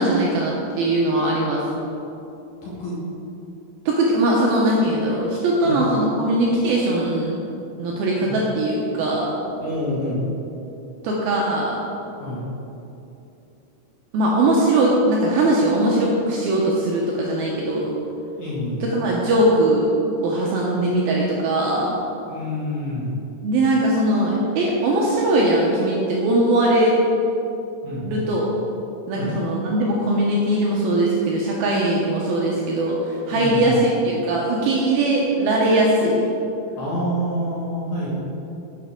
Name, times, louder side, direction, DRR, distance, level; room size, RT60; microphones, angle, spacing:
voice 1, 0.0-1.6 3.9-7.4 7.8-9.3 11.0-11.8 14.1-17.9 18.8-20.0 20.2-22.0 23.4-27.0 28.0-28.5 29.1-36.2, right 1 dB, 75° right, -3 dB, 2.4 m, -20 dB
voice 2, 2.6-3.0 5.6-5.8 8.2-8.3 9.6-10.3 12.2-12.5 18.4-18.8 22.2-23.2 27.8-28.3 29.1-29.3 33.3-33.8 36.8-38.1, left 1 dB, 55° left, -8 dB, 2.5 m, -27 dB
11.0 x 7.6 x 3.7 m, 2.8 s
omnidirectional pair, 5.1 m